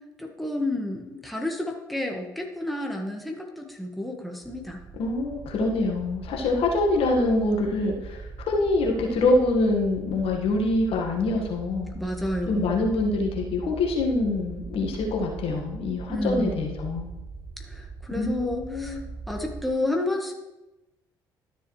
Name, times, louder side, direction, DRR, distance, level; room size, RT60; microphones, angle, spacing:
voice 1, 0.2-4.8 11.9-12.8 16.1-16.7 17.6-19.0 19.3-20.3, left 1 dB, ahead, 1 dB, 1.6 m, -30 dB
sound 1, 4.4-19.7, right 4 dB, 45° right, 1.8 m, -40 dB
voice 2, 5.0-11.9 12.5-17.1 18.2-19.0, left 2 dB, 65° left, 0 dB, 1.7 m, -25 dB
12.5 x 7.2 x 3.2 m, 0.98 s
hypercardioid pair, 50°, 11 cm